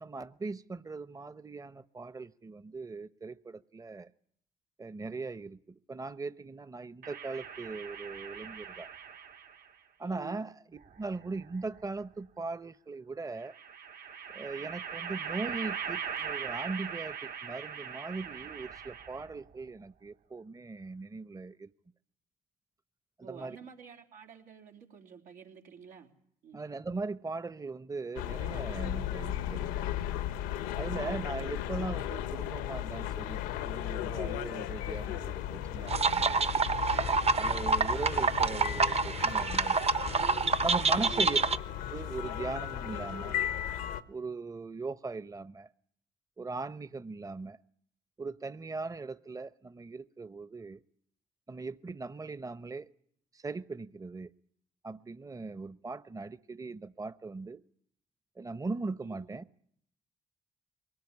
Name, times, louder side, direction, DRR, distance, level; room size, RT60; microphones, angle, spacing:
voice 1, 0.0-4.1 4.8-8.9 10.0-10.5 11.0-13.6 14.3-21.7 23.2-23.6 26.5-29.9 30.8-36.4 37.4-40.0 40.6-41.4 41.9-43.4 44.1-45.7 46.4-47.6 48.2-50.8 51.5-52.9 53.3-54.3 54.8-57.6 58.4-59.6, right 3 dB, 20° right, 0.9 m, -39 dB
sound 1, 7.0-9.7 10.8-11.8 13.4-19.4, right 7 dB, 65° right, 2.0 m, -41 dB
voice 2, 10.0-10.5 23.2-26.1 26.4-26.6 30.9-31.3 41.0-41.3 59.1-59.3, right 7 dB, 85° right, 3.5 m, -50 dB
sound 2, 28.2-44.0, left 11 dB, 90° left, 1.0 m, -36 dB
sound 3, 35.9-41.6, right 4 dB, 40° right, 1.1 m, -27 dB
23.0 x 18.5 x 9.8 m
hypercardioid pair, 50°, 16 cm